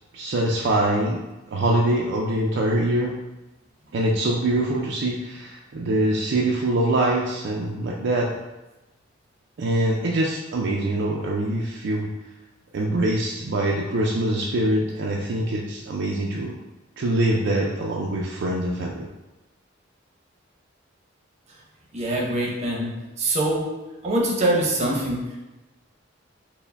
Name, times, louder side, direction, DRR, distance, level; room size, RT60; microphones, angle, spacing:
voice 1, 0.1-1.2 1.5-3.1 3.9-8.3 9.6-12.1 12.7-16.6 17.0-19.1, right 1 dB, 60° right, -2 dB, 0.4 m, -24 dB
voice 2, 21.9-22.9 23.2-23.6 24.0-25.4, right 1 dB, 35° right, -2 dB, 0.7 m, -23 dB
4.4 x 2.1 x 3.3 m, 1.0 s
head